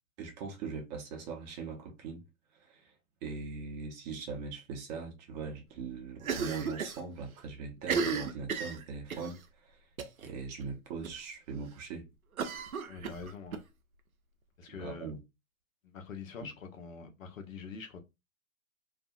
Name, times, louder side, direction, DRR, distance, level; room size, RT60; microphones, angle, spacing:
voice 1, 0.2-2.2 2.5-2.9 3.2-9.9 10.2-12.1 14.7-15.2, right 5 dB, 30° right, 0.8 m, -41 dB
Cough, 6.2-7.0 7.3-7.4 7.8-9.3 10.0-10.3 10.6-10.7 11.0-11.1 12.4-13.6, right 5 dB, 90° right, 0.6 m, -34 dB
voice 2, 12.9-13.6 14.6-15.1 15.8-18.0, left 5 dB, 70° left, 0.8 m, -44 dB
2.6 x 2.4 x 2.3 m
hypercardioid pair, 120°, 41 cm